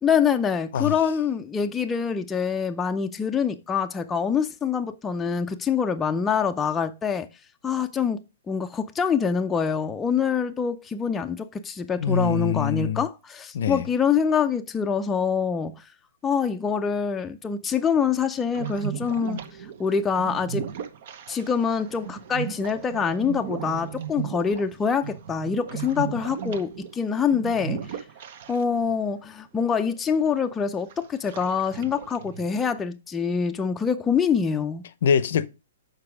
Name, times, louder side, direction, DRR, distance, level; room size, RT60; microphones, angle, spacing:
voice 1, 0.0-7.3 7.6-15.8 16.2-19.4 19.8-20.7 21.3-28.0 28.5-34.8, left 6 dB, 10° left, 0.5 m, -25 dB
voice 2, 12.0-13.0 13.5-13.8 35.0-35.5, left 7 dB, 60° left, 0.6 m, -24 dB
sound 1, 18.5-28.9 29.2-29.3 30.0-30.4 30.9-32.7, right 8 dB, 50° right, 0.9 m, -36 dB
6.7 x 4.7 x 4.8 m
hypercardioid pair, 150°, 0 cm